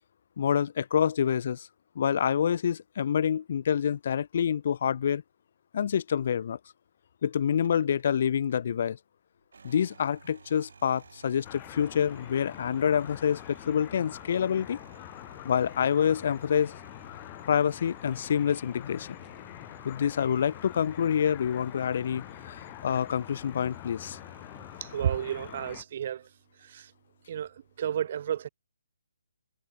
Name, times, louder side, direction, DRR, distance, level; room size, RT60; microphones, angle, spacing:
voice 1, 0.4-1.7 1.9-5.2 5.7-6.6 7.2-9.0 9.6-14.8 15.4-16.8 17.5-19.1 19.8-24.2, left 8 dB, 35° left, 1.2 m, -27 dB
sound 1, 7.6-8.7 9.4-25.8, right 5 dB, 65° right, 7.6 m, -54 dB
sound 2, 11.4-25.8, left 31 dB, 15° left, 4.0 m, -45 dB
voice 2, 24.8-26.3 26.7-26.9 27.3-28.5, right 9 dB, 30° right, 0.5 m, -32 dB
hypercardioid pair, 175°, 0 cm